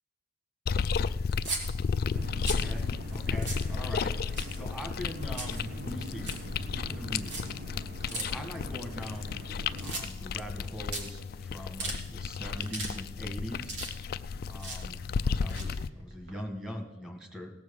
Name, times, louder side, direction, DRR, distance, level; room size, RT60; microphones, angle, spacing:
sound 1, 0.7-15.9, left 5 dB, 55° left, 0.3 m, -33 dB
sound 2, 1.3-1.6 2.2-2.7 3.1-3.2 3.4-3.7 4.2-4.8 5.0-5.6 6.0-6.4 7.2-7.4 8.1-8.2 8.9-9.5 9.8-10.3 10.6-10.7 10.9-11.0 11.5-12.0 12.5-12.9 13.2-14.2 14.5-14.8 15.4-16.3, right 3 dB, 80° right, 2.8 m, -37 dB
sound 3, 2.1-10.0, equal, 50° right, 1.1 m, -43 dB
voice 1, 2.6-7.4 8.0-9.4 9.8-13.7 14.4-17.5, equal, 5° right, 1 dB, 1.7 m, -42 dB
17.5 x 6.2 x 7.1 m, 1.2 s
head